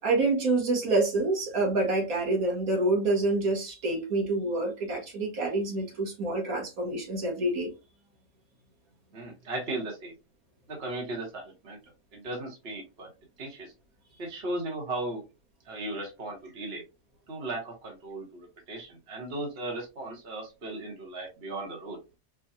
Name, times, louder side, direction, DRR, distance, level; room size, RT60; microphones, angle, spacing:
voice 1, 0.0-7.7, right 2 dB, 75° right, 1.7 m, -27 dB
voice 2, 9.1-10.1 10.7-11.8 12.1-13.1 13.4-13.7 14.2-15.2 15.6-16.8 17.3-22.0, right 2 dB, 45° right, 1.3 m, -36 dB
4.7 x 2.4 x 2.6 m
omnidirectional pair, 1.5 m